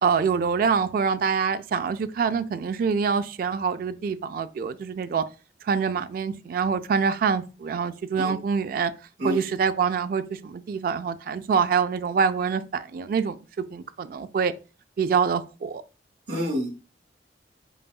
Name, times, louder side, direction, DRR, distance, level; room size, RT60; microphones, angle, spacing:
voice 1, 0.0-5.3 5.6-8.9 9.2-14.5 15.0-15.8, right 6 dB, 55° right, 0.3 m, -25 dB
voice 2, 16.3-16.7, left 1 dB, 85° right, 1.4 m, -28 dB
5.3 x 2.3 x 2.3 m
head